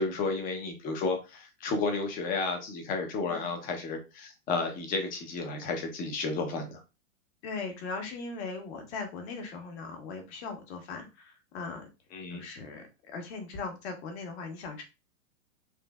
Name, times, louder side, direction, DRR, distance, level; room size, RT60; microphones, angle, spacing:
voice 1, 0.0-6.8 12.1-12.4, left 3 dB, 20° left, 5 dB, 0.6 m, -32 dB
voice 2, 7.4-11.9 12.3-14.8, left 4 dB, 45° left, 4 dB, 1.2 m, -39 dB
3.8 x 2.6 x 2.2 m, 0.28 s
hypercardioid pair, 135°, 44 cm